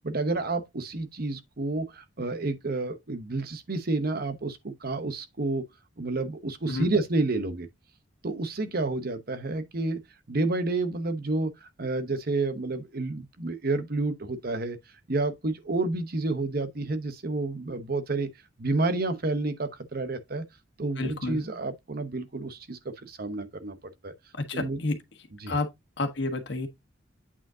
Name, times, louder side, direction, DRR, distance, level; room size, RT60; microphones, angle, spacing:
voice 1, 0.0-5.7 6.0-7.7 8.2-10.0 10.3-14.8 15.1-18.3 18.6-20.4 20.8-23.8 24.0-24.1 24.5-24.8 25.4-25.6, right 2 dB, 50° right, 0.9 m, -30 dB
voice 2, 21.0-21.4 24.4-25.0 25.5-25.7 26.0-26.7, left 2 dB, 65° left, 1.4 m, -29 dB
8.5 x 5.1 x 2.7 m
head